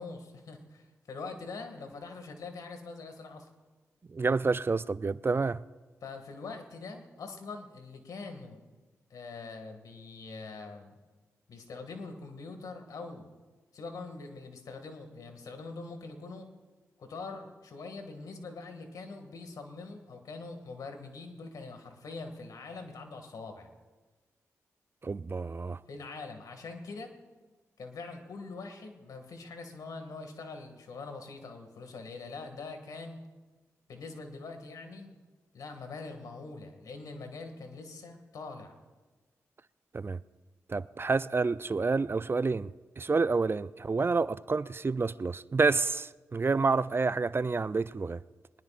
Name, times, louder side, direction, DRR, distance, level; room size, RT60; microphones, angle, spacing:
voice 1, 0.0-3.5 6.0-8.6 9.1-10.9 11.5-13.3 13.7-16.5 17.0-23.7 25.9-27.1 27.8-33.2 33.9-35.2 35.5-38.7, left 3 dB, 80° left, 2.2 m, -43 dB
voice 2, 4.1-5.6 25.0-25.8 39.9-40.2 40.7-42.7 43.0-48.2, right 4 dB, 40° right, 0.4 m, -28 dB
23.0 x 20.5 x 2.5 m
supercardioid pair, 45°, 6 cm